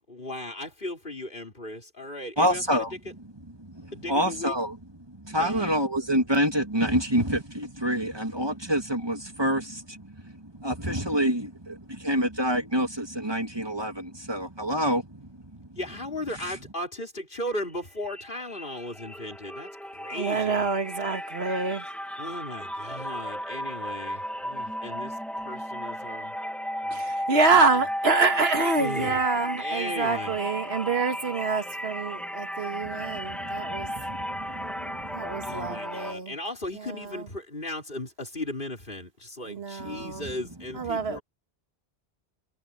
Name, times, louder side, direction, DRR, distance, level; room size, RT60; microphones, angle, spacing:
voice 1, 0.1-2.8 3.9-4.5 5.4-5.8 15.7-19.7 20.0-20.7 22.2-25.1 25.4-26.3 26.8-27.0 27.5-27.7 28.8-29.2 29.6-30.4 35.4-41.2, left 1 dB, 55° left, 4.7 m, -36 dB
voice 2, 2.4-2.9 3.4-4.8 5.2-15.3 16.3-16.6 32.9-35.8 39.8-40.4 40.9-41.2, equal, 25° right, 2.2 m, -28 dB
sound 1, 17.5-17.8 18.0-36.1, equal, ahead, 0.7 m, -34 dB
voice 3, 20.1-21.9 26.9-33.9 35.1-36.3 36.7-37.3 39.5-40.3 40.7-41.2, right 4 dB, 90° right, 1.8 m, -26 dB
omnidirectional pair, 1.0 m